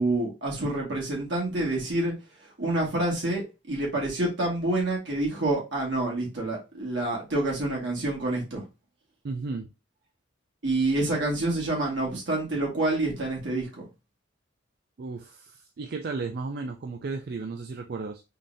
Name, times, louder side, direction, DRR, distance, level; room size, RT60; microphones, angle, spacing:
voice 1, 0.0-2.1 2.6-8.6 10.6-13.8, right 2 dB, 80° right, -2 dB, 1.8 m, -27 dB
voice 2, 9.2-9.7 15.0-18.2, right 4 dB, 55° right, 4 dB, 0.4 m, -34 dB
3.8 x 3.2 x 2.6 m, 0.27 s
head